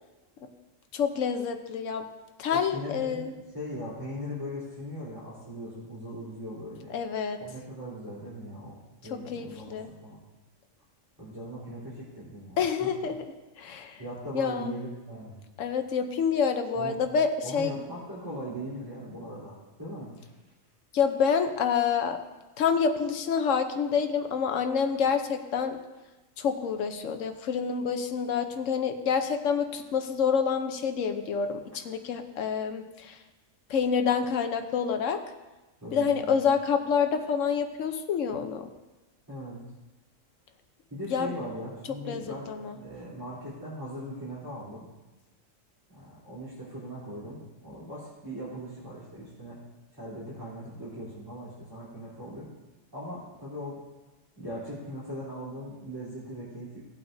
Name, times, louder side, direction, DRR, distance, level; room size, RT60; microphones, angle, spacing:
voice 1, 0.9-2.1 2.4-3.3 6.9-7.4 9.1-9.9 12.6-14.0 14.3-14.8 15.6-17.9 20.9-22.2 22.6-25.8 26.4-33.2 33.7-35.2 35.9-38.7 41.1-41.4 41.9-42.8, left 6 dB, 75° left, 7 dB, 1.2 m, -28 dB
voice 2, 2.5-6.9 7.4-10.2 11.2-12.9 14.0-15.4 16.7-17.0 17.4-20.3 35.8-36.3 39.3-39.6 40.9-44.9 45.9-49.6 49.9-52.5 52.9-53.8 54.3-56.8, equal, 15° right, -11 dB, 3.5 m, -39 dB
17.0 x 8.7 x 2.7 m, 1.1 s
omnidirectional pair, 1.3 m